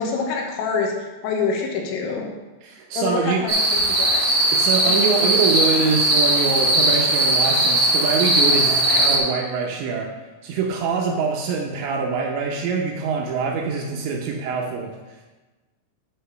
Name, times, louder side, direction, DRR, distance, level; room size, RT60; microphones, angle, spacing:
voice 1, 0.0-2.3 3.0-4.3 4.8-5.1, left 4 dB, 85° left, 1 dB, 3.8 m, -26 dB
voice 2, 2.6-3.4 4.5-10.2 10.4-15.0, right 5 dB, 80° right, 1 dB, 2.8 m, -24 dB
sound 1, 3.5-9.2, right 1 dB, 40° right, 1.7 m, -19 dB
10.5 x 5.0 x 5.6 m, 1.2 s
omnidirectional pair, 5.8 m